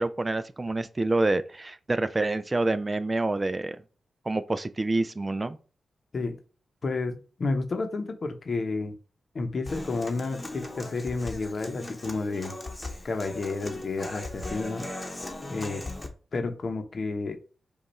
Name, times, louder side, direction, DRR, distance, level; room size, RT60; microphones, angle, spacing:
voice 1, 0.0-3.8 4.3-5.6, right 2 dB, 30° right, 0.4 m, -27 dB
voice 2, 6.8-8.9 9.3-12.5 13.0-14.9 15.5-15.9 16.3-17.4, left 3 dB, 55° left, 0.8 m, -31 dB
Human voice / Acoustic guitar, 9.7-16.1, left 2 dB, 25° left, 1.0 m, -38 dB
5.2 x 2.4 x 4.1 m
cardioid pair, 65°, 0 cm